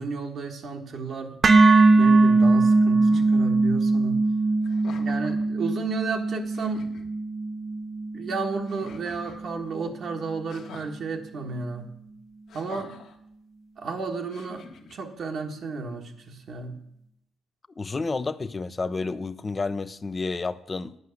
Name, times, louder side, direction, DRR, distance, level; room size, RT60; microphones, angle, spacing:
voice 1, 0.0-1.4 2.0-4.3 4.9-6.9 8.1-12.0 12.5-12.9 13.8-16.8, right 4 dB, 60° right, 1.5 m, -33 dB
sound 1, 1.4-9.5, right 3 dB, 40° right, 0.8 m, -21 dB
sound 2, 3.1-3.4 4.6-5.5 6.1-6.2 6.5-7.1 8.6-9.4 10.5-10.9 12.5-13.2 14.3-14.9, left 5 dB, 75° left, 1.3 m, -45 dB
voice 2, 17.8-21.0, left 3 dB, 30° left, 0.5 m, -30 dB
9.5 x 5.5 x 8.3 m
cardioid pair, 90°, 0 cm